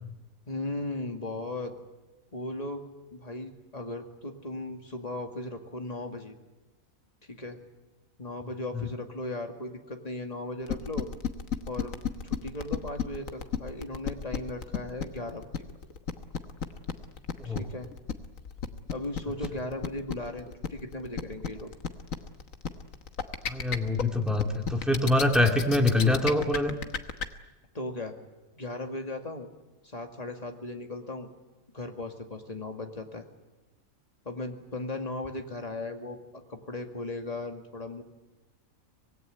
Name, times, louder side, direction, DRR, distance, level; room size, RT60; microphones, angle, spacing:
voice 1, 0.5-1.7 2.3-2.8 3.1-6.3 7.3-7.6 8.2-11.1 11.7-12.0 12.2-15.6 17.4-17.9 18.9-21.7 27.7-28.1 28.6-29.5 29.8-31.3 31.7-33.3 34.2-36.2 36.5-38.0, left 2 dB, 30° left, 4 dB, 2.3 m, -37 dB
sound 1, 10.7-27.3, left 7 dB, 70° left, 1.6 m, -32 dB
voice 2, 23.5-26.8, left 2 dB, ahead, 2 dB, 2.4 m, -25 dB
25.0 x 19.0 x 9.4 m, 1.1 s
omnidirectional pair, 1.5 m